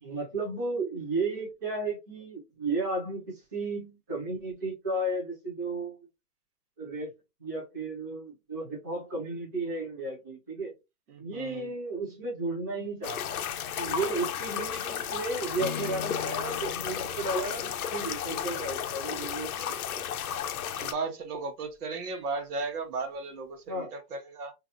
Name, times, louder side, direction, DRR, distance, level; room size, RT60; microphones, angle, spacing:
voice 1, 0.0-6.1 6.8-7.1 7.4-10.7 11.2-13.4 13.8-20.0 23.7-23.9, right 2 dB, 15° right, 0.4 m, -34 dB
voice 2, 11.1-11.7 18.5-18.6 20.7-24.5, right 3 dB, 65° right, 1.2 m, -36 dB
sound 1, 13.0-20.9, left 9 dB, 60° left, 0.6 m, -33 dB
Acoustic guitar / Strum, 15.6-19.5, left 5 dB, 15° left, 1.2 m, -42 dB
3.9 x 2.6 x 2.5 m
hypercardioid pair, 135°, 49 cm